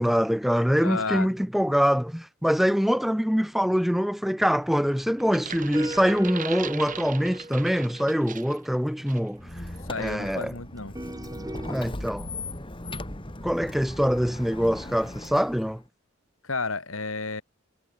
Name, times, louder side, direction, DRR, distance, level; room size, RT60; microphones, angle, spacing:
voice 1, 0.0-9.6 10.0-10.5 11.7-12.3 13.4-15.8, equal, ahead, 0.5 m, -24 dB
voice 2, 0.8-1.3 9.8-10.9 16.4-17.4, left 3 dB, 75° left, 3.2 m, -31 dB
sound 1, 4.5-11.8, right 1 dB, 20° right, 2.1 m, -41 dB
sound 2, 5.2-8.7 9.1-9.3, right 7 dB, 40° right, 3.5 m, -39 dB
Squeak, 9.4-15.8, left 2 dB, 25° left, 2.8 m, -38 dB
head